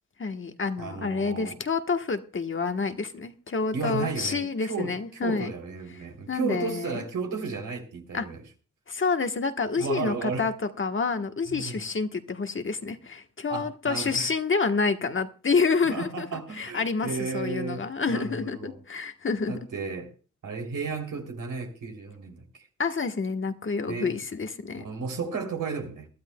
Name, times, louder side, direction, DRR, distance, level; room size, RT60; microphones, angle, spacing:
voice 1, 0.2-5.5 6.3-7.0 8.1-8.2 8.9-19.6 22.8-24.8, left 4 dB, 40° left, 1.2 m, -28 dB
voice 2, 0.8-1.6 3.7-8.4 9.8-10.5 11.5-11.9 13.5-14.3 15.8-18.8 19.5-20.1 20.4-22.6 23.9-24.2 24.7-26.1, right 4 dB, 80° right, 3.2 m, -34 dB
22.5 x 12.5 x 2.2 m
cardioid pair, 65°, 31 cm